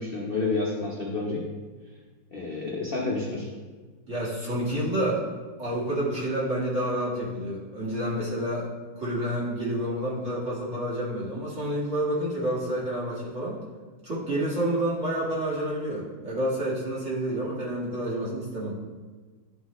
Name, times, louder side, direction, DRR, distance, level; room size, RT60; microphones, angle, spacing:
voice 1, 0.0-1.4 2.3-3.5, left 3 dB, 55° left, -4 dB, 0.6 m, -29 dB
voice 2, 4.1-5.3 5.6-8.7 9.0-13.6 14.0-18.7, right 1 dB, 35° right, -7 dB, 1.8 m, -29 dB
11.5 x 3.9 x 3.1 m, 1.4 s
omnidirectional pair, 2.3 m